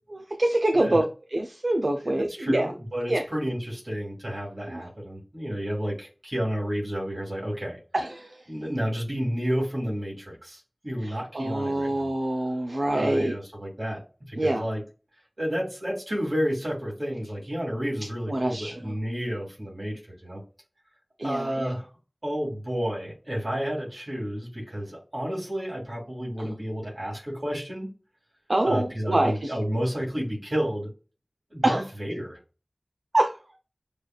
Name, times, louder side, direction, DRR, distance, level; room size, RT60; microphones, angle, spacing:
voice 1, 0.1-1.0 1.3-2.7 3.1-3.2 4.7-4.8 7.9-8.4 11.0-13.3 14.4-14.6 18.3-18.9 21.2-21.7 26.4-26.5 28.5-29.5 31.6-31.9 33.1-33.4, right 1 dB, 70° right, 4 dB, 0.5 m, -25 dB
voice 2, 2.0-7.8 8.5-12.1 12.9-14.8 15.4-20.4 21.2-21.9 22.2-27.9 28.6-30.9 31.5-32.4, equal, 55° right, -3 dB, 2.2 m, -31 dB
6.6 x 2.4 x 2.3 m, 0.33 s
wide cardioid pair, 45°, 0 cm